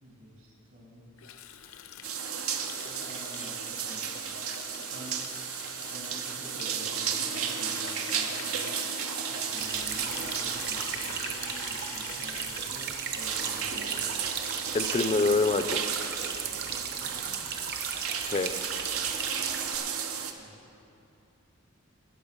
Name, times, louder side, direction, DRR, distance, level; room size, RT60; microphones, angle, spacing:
voice 1, 0.0-1.0 2.8-4.0 4.8-5.2 5.9-8.7 9.3-14.1 16.9-17.4 20.4-20.5, equal, 65° right, -1 dB, 2.6 m, -48 dB
Water tap faucet, 1.2-14.2 14.5-14.7 15.0-15.4 15.6-15.7 16.0-16.1 16.4-16.5 16.7-17.8, left 8 dB, 70° left, 0.6 m, -46 dB
sound 1, 2.0-20.3, right 7 dB, 85° right, 0.8 m, -34 dB
sound 2, 9.6-19.8, right 6 dB, 50° right, 0.9 m, -37 dB
voice 2, 14.7-15.8 18.3-18.5, left 3 dB, 30° left, 10 dB, 0.4 m, -25 dB
19.5 x 6.6 x 5.2 m, 2.7 s
head